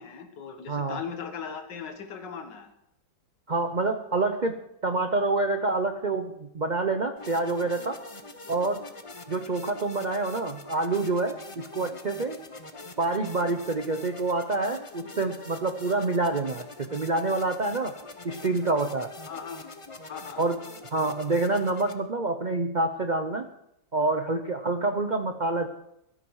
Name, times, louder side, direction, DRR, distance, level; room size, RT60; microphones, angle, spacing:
voice 1, 0.0-2.7 19.3-19.7 20.1-20.4, left 6 dB, 65° left, 6 dB, 2.1 m, -38 dB
voice 2, 0.7-1.0 3.5-8.0 8.5-8.9 9.3-12.4 13.0-16.6 16.9-17.9 18.2-19.1 20.4-20.6 20.9-23.5 23.9-25.7, right 3 dB, 90° right, 6 dB, 0.4 m, -27 dB
sound 1, 7.2-21.9, left 3 dB, 35° left, 0.5 m, -44 dB
17.5 x 13.0 x 4.7 m, 0.80 s
omnidirectional pair, 2.1 m